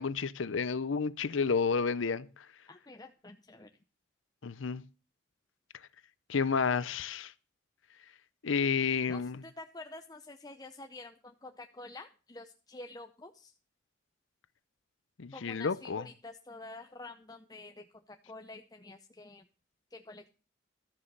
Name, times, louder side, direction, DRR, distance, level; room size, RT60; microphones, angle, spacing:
voice 1, 0.0-2.3 4.4-4.8 6.3-7.3 8.4-9.4 15.2-16.1, left 5 dB, 85° left, 0.6 m, -30 dB
voice 2, 2.7-3.7 9.1-13.5 15.3-19.5 19.9-20.3, left 2 dB, 20° left, 0.6 m, -48 dB
13.0 x 7.0 x 6.7 m
head